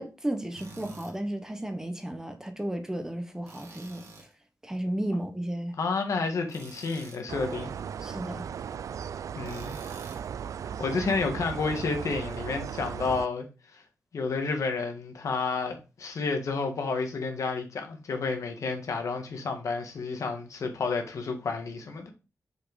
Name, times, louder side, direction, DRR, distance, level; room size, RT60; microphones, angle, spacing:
voice 1, 0.0-4.0 4.6-5.7 8.0-8.5, right 1 dB, 10° right, 1.1 m, -33 dB
Tools, 0.6-1.1 3.5-4.3 6.5-7.2 9.4-10.3, right 3 dB, 60° right, 2.3 m, -48 dB
voice 2, 5.8-7.7 9.3-9.8 10.6-13.5 13.7-13.8 14.1-22.1, left 4 dB, 75° left, 1.8 m, -30 dB
sound 1, 7.3-13.3, right 8 dB, 80° right, 0.3 m, -37 dB
6.5 x 5.7 x 4.0 m
wide cardioid pair, 135°, 5 cm